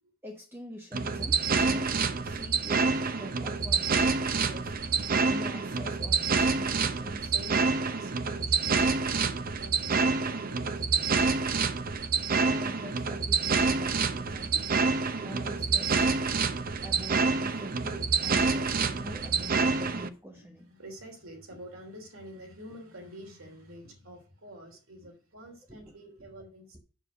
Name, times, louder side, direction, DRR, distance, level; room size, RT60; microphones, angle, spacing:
voice 1, 0.2-4.7 5.3-7.3 12.4-14.6 15.2-16.2 16.8-20.7 25.7-25.9, equal, 10° right, 2 dB, 1.0 m, -45 dB
sound 1, 0.9-20.1, right 4 dB, 45° right, 0.7 m, -27 dB
voice 2, 7.3-11.1 12.2-12.3 20.0-26.8, equal, 85° right, 3 dB, 3.2 m, -48 dB
7.1 x 6.9 x 4.9 m, 0.36 s
head